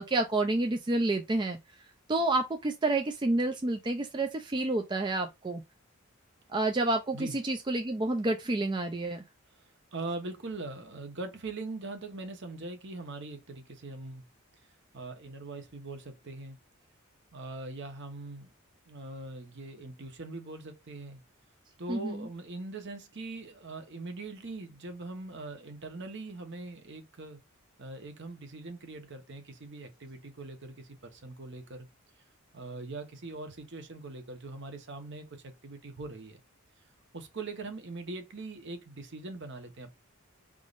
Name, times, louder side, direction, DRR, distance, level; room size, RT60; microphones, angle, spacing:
voice 1, 0.0-1.6 2.1-5.6 6.5-9.2 21.9-22.2, right 2 dB, 20° right, 0.4 m, -29 dB
voice 2, 9.9-14.2 14.9-16.6 17.3-18.5 18.9-21.2 21.8-27.4 27.8-31.9 32.5-36.4 37.1-39.9, right 2 dB, 55° right, 1.0 m, -41 dB
5.1 x 3.6 x 2.5 m
head